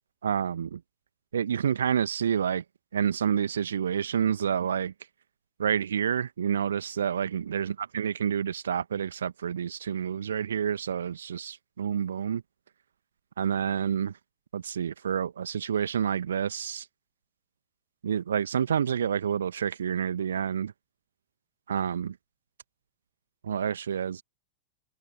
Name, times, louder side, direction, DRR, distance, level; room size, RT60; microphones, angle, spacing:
voice 1, 0.2-0.8 1.3-2.6 2.9-4.9 5.6-12.4 13.4-14.1 14.5-16.9 18.0-20.7 21.7-22.1 23.4-24.2, right 8 dB, 65° right, 1.2 m, -28 dB
open air
figure-of-eight pair, 90°, 0 cm